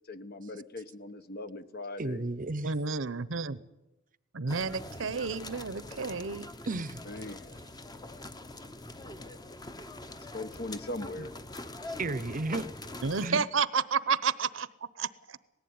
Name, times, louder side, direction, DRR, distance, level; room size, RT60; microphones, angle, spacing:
voice 1, 0.1-2.2 7.0-7.6 10.3-11.3, left 2 dB, 50° left, 11 dB, 1.1 m, -40 dB
voice 2, 2.0-2.7 6.7-7.0 11.2-11.3 12.0-12.7 13.2-13.4, right 2 dB, 40° right, 16 dB, 0.8 m, -33 dB
voice 3, 2.6-3.6 4.3-6.5 13.0-14.7 14.9-15.4, right 5 dB, 70° right, 16 dB, 0.9 m, -31 dB
sound 1, 4.5-13.3, left 2 dB, 20° left, 1.0 m, -44 dB
18.5 x 15.5 x 9.5 m, 1.0 s
head